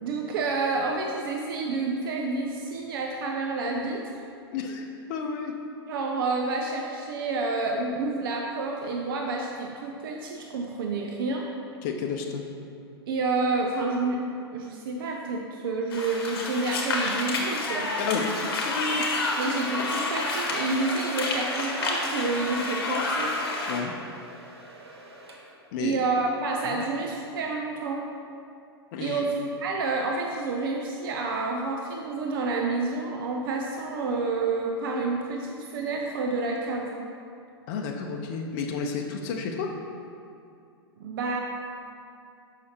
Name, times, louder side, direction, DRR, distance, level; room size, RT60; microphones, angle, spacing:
voice 1, 0.0-4.2 5.9-11.5 13.1-14.2 14.5-17.9 19.4-23.3 25.8-28.0 29.0-37.0 41.0-41.4, right 3 dB, 60° right, 1 dB, 0.6 m, -29 dB
voice 2, 4.5-5.5 11.8-12.4 18.0-19.0 23.7-23.9 25.7-26.0 26.7-26.8 28.9-29.3 37.7-39.7, left 5 dB, 50° left, 2 dB, 0.6 m, -31 dB
sound 1, 15.9-23.8, left 2 dB, 65° left, 1.0 m, -29 dB
Domestic sounds home sounds, 19.0-25.7, right 1 dB, 85° right, 0.9 m, -42 dB
6.2 x 5.7 x 2.8 m, 2.5 s
hypercardioid pair, 105°, 13 cm